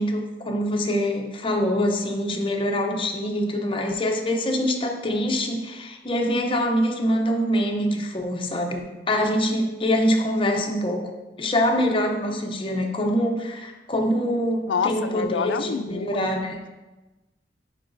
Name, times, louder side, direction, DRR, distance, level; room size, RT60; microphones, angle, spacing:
voice 1, 0.0-11.1 11.4-16.6, equal, 30° left, 3 dB, 0.6 m, -24 dB
voice 2, 14.7-16.3, left 6 dB, 75° left, 9 dB, 0.4 m, -27 dB
9.6 x 3.8 x 2.6 m, 1.1 s
head